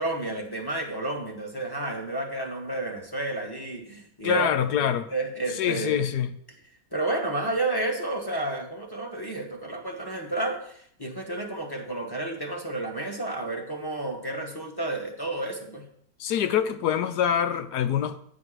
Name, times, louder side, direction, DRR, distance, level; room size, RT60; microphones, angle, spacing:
voice 1, 0.0-6.0 6.9-15.9, right 2 dB, 15° left, 0 dB, 1.3 m, -31 dB
voice 2, 4.2-5.1 5.6-6.3 16.2-18.2, left 9 dB, 75° left, 9 dB, 1.2 m, -25 dB
9.2 x 5.1 x 6.2 m, 0.64 s
omnidirectional pair, 1.8 m